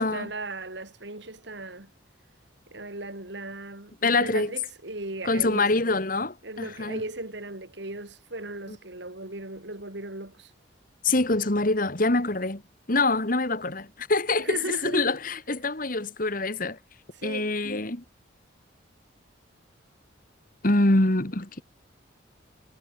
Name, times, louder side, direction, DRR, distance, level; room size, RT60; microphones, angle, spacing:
voice 1, 0.0-1.9 2.7-5.7 6.4-10.5 14.4-15.1 17.1-17.6, right 2 dB, 65° right, 3.8 m, -37 dB
voice 2, 4.0-4.5 5.2-7.0 11.0-12.6 12.9-16.8 17.2-18.0 20.6-21.6, left 2 dB, 45° left, 2.0 m, -25 dB
head